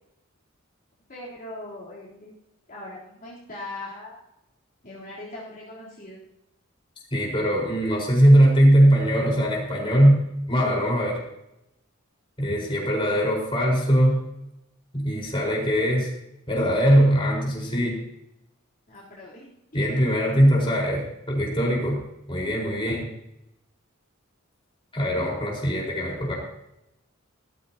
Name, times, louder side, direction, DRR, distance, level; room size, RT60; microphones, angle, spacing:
voice 1, 1.1-2.3 2.7-4.2 4.8-6.2 18.9-19.8, left 2 dB, 45° left, -7 dB, 3.6 m, -40 dB
voice 2, 7.1-10.2 10.5-11.2 12.4-14.2 14.9-16.1 16.5-18.0 19.7-22.0 22.3-23.1 24.9-26.4, equal, 25° left, -3 dB, 4.5 m, -20 dB
15.0 x 14.0 x 2.9 m, 0.86 s
head